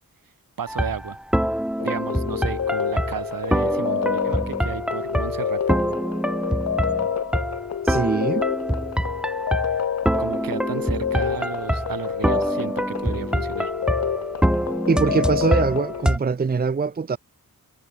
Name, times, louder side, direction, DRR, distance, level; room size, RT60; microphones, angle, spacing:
voice 1, 0.6-1.2 1.8-5.8 10.2-13.7, right 7 dB, 75° right, 2.2 m, -33 dB
sound 1, 0.7-16.2, equal, ahead, 1.4 m, -25 dB
sound 2, 1.8-16.1, left 8 dB, 45° left, 0.7 m, -28 dB
voice 2, 7.8-8.4 14.9-17.2, right 5 dB, 25° right, 0.7 m, -23 dB
wide cardioid pair, 170°, 35 cm